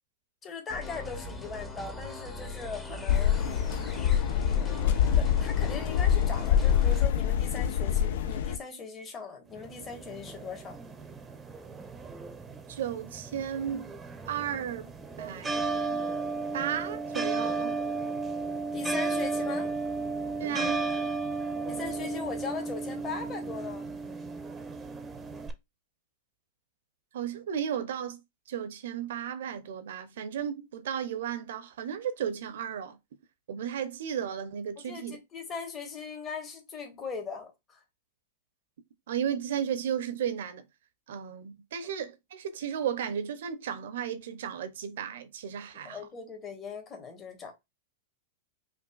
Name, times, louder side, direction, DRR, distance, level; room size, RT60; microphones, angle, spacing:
voice 1, 0.4-3.4 5.1-10.8 18.7-19.7 21.7-23.9 34.8-37.8 45.8-47.5, left 5 dB, 25° left, 1.3 m, -39 dB
sound 1, 0.7-7.1, left 2 dB, 10° left, 0.9 m, -40 dB
sound 2, 3.1-8.6, left 9 dB, 60° left, 0.4 m, -25 dB
sound 3, 9.5-25.5, right 3 dB, 15° right, 0.7 m, -34 dB
voice 2, 12.7-13.9 14.3-14.9 15.2-16.0 16.5-17.8 20.4-20.9 27.1-28.2 28.5-33.0 33.5-35.2 39.1-40.6 41.1-46.0, right 8 dB, 65° right, 0.7 m, -34 dB
5.2 x 2.5 x 2.4 m
hypercardioid pair, 100°, 0 cm